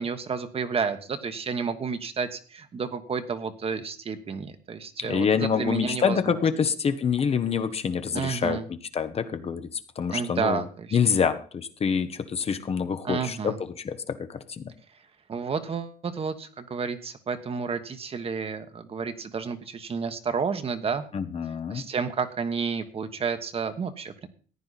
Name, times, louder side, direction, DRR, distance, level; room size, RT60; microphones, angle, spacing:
voice 1, 0.0-6.4 8.1-8.6 10.1-11.0 13.0-13.6 15.3-21.0 21.7-24.3, right 5 dB, 35° right, 9 dB, 1.3 m, -31 dB
voice 2, 5.0-10.6 10.9-14.6 21.1-21.8, left 6 dB, 35° left, 10 dB, 1.0 m, -26 dB
14.5 x 9.6 x 4.1 m, 0.40 s
cardioid pair, 110°, 17 cm